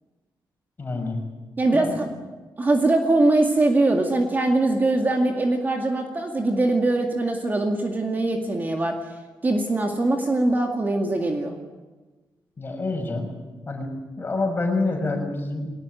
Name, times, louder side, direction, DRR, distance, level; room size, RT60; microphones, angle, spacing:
voice 1, 0.8-1.2 1.7-2.0 12.6-13.3 13.7-13.9 14.2-15.7, left 3 dB, 25° left, 2 dB, 6.2 m, -27 dB
voice 2, 1.6-2.1 2.6-9.0 9.4-11.5, right 2 dB, 25° right, 3 dB, 2.2 m, -22 dB
22.0 x 19.5 x 9.3 m, 1.2 s
wide cardioid pair, 155°, 8 cm